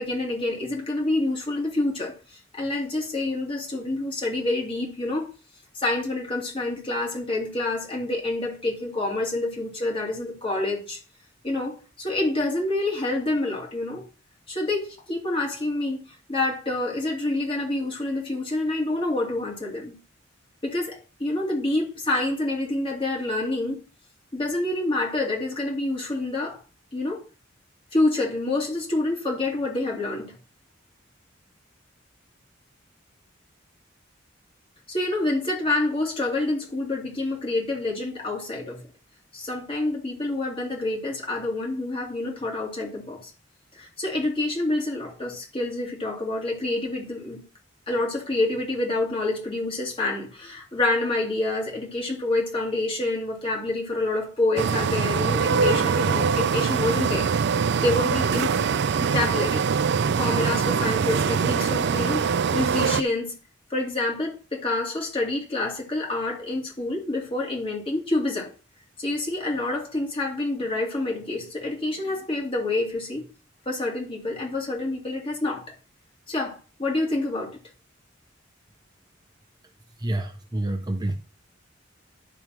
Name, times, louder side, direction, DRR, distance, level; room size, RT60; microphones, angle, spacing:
voice 1, 0.0-5.3 5.7-11.0 11.4-14.0 14.5-20.0 20.6-23.8 24.3-26.6 26.9-27.2 27.9-30.3 34.9-38.8 39.3-43.3 43.7-47.4 47.9-57.3 57.8-58.7 59.0-59.6 60.2-63.3 63.7-68.5 69.0-73.3 73.7-75.7 76.3-77.6, left 2 dB, 30° left, 2.5 m, -27 dB
sound 1, 54.6-63.0, right 6 dB, 60° right, 0.4 m, -23 dB
voice 2, 80.0-81.2, right 1 dB, 20° right, 0.6 m, -28 dB
11.0 x 3.6 x 5.9 m
head